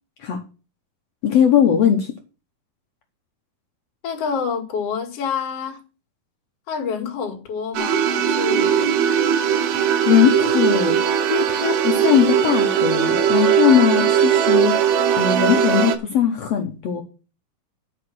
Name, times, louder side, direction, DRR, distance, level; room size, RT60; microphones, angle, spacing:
voice 1, 1.2-2.1 10.0-17.0, left 9 dB, 80° left, 1.4 m, -19 dB
voice 2, 4.0-5.8 6.7-8.9, left 6 dB, 45° left, 2.6 m, -27 dB
sound 1, 7.7-16.0, right 8 dB, 85° right, 2.7 m, -19 dB
9.7 x 5.6 x 6.2 m
omnidirectional pair, 4.4 m